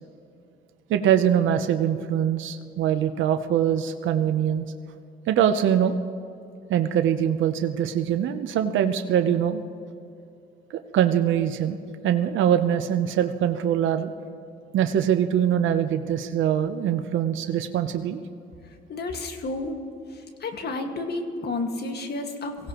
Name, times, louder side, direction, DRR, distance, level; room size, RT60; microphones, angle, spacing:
voice 1, 0.9-4.7 5.3-6.0 6.7-9.6 10.7-14.1 14.7-18.2, right 9 dB, 75° right, 8 dB, 0.8 m, -23 dB
voice 2, 18.9-19.8 20.4-22.7, left 2 dB, 55° left, 4 dB, 1.9 m, -31 dB
23.5 x 16.5 x 3.0 m, 2.5 s
cardioid pair, 90°, 20 cm